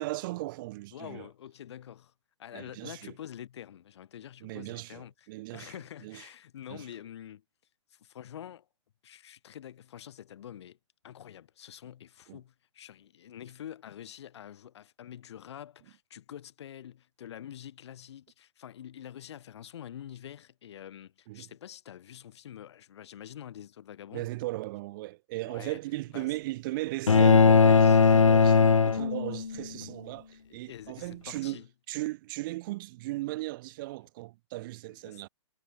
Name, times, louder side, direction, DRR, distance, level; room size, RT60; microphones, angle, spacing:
voice 1, 0.0-1.3 2.5-3.1 4.4-5.7 6.0-6.2 6.7-6.9 12.3-12.4 21.3-21.5 24.1-31.6 31.9-35.3, right 19 dB, 40° right, 3.1 m, -37 dB
voice 2, 0.9-2.1 2.4-7.4 7.9-8.7 9.0-10.8 11.0-24.3 25.5-25.8 26.1-26.3 27.6-28.0 30.5-31.7 34.9-35.2, left 10 dB, 60° left, 5.6 m, -46 dB
sound 1, 27.1-29.6, left 5 dB, 85° left, 1.3 m, -19 dB
hypercardioid pair, 130°, 16 cm